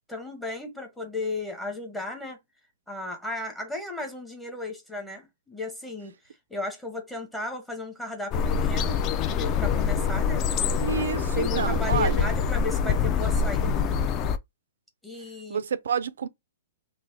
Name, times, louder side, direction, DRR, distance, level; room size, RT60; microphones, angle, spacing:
voice 1, 0.1-2.4 2.9-9.0 9.3-10.4 11.1-13.9 15.0-15.6, left 2 dB, 5° left, 0.7 m, -35 dB
sound 1, 8.3-14.4, left 6 dB, 25° left, 0.3 m, -25 dB
voice 2, 10.8-12.3 15.5-16.3, right 7 dB, 80° right, 0.4 m, -29 dB
3.2 x 2.0 x 3.6 m
hypercardioid pair, 155°, 0 cm